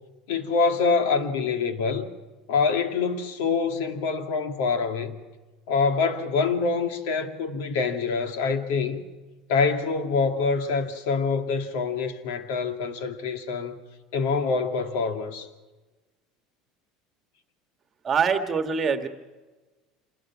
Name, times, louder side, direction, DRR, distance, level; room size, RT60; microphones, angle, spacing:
voice 1, 0.3-2.1 2.5-5.2 5.7-9.0 9.5-13.8 14.1-15.5, left 4 dB, 80° left, 2.4 m, -25 dB
voice 2, 18.0-19.1, right 6 dB, 20° right, 1.5 m, -24 dB
27.0 x 20.5 x 6.1 m
cardioid pair, 170°, 0 cm